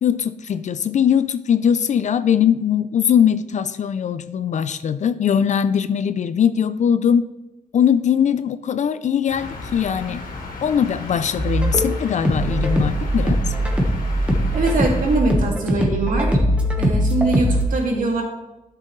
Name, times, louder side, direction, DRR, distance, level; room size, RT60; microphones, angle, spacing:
voice 1, 0.0-7.2 7.7-10.2 10.6-13.4, left 8 dB, 55° left, 12 dB, 0.4 m, -20 dB
sound 1, 9.3-15.2, left 3 dB, 85° left, 2.2 m, -34 dB
sound 2, 11.4-17.6, equal, 10° right, 1.2 m, -21 dB
voice 2, 14.5-16.4 16.8-18.2, right 3 dB, 65° right, 0 dB, 2.2 m, -22 dB
12.0 x 6.8 x 3.2 m, 0.98 s
wide cardioid pair, 135°, 15 cm